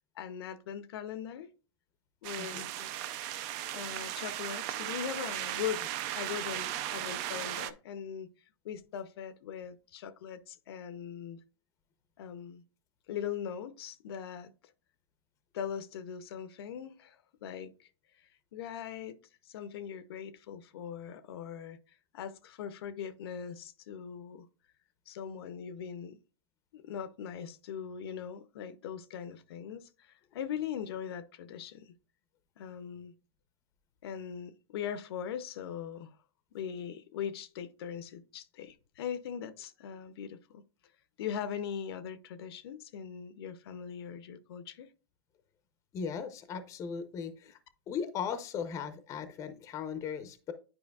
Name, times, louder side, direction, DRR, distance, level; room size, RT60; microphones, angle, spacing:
voice 1, 0.2-1.5 2.2-2.9 3.7-8.3 8.6-11.4 12.2-12.6 13.1-14.5 15.5-17.9 18.5-24.5 25.1-26.2 26.7-31.9 32.6-33.1 34.0-36.2 36.5-40.6 41.2-44.9, left 8 dB, 60° left, 0.6 m, -40 dB
sound 1, 2.2-7.7, right 13 dB, 35° right, 0.4 m, -37 dB
voice 2, 45.9-47.6 47.9-50.5, left 6 dB, 20° left, 0.6 m, -37 dB
9.6 x 4.9 x 2.3 m
hypercardioid pair, 145°, 15 cm